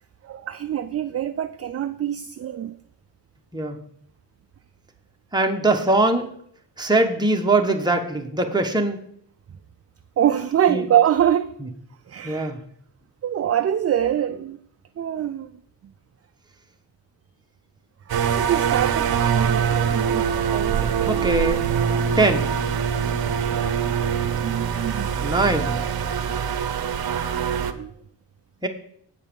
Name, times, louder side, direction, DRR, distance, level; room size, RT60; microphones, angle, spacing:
voice 1, 0.2-2.8 10.2-11.6 12.1-12.5 13.2-14.6 15.0-15.5 18.1-21.2 24.0-24.1 24.4-25.1 27.7-27.9, right 10 dB, 35° right, 0.4 m, -24 dB
voice 2, 5.3-6.3 6.8-9.0 10.7-10.8 11.6-11.7 12.2-12.6 21.0-21.7 22.2-22.5 25.2-25.8 28.6-28.7, right 2 dB, 10° right, 1.1 m, -21 dB
sound 1, 18.1-27.7, right 7 dB, 60° right, 0.8 m, -23 dB
8.2 x 5.5 x 6.8 m
wide cardioid pair, 130°, 42 cm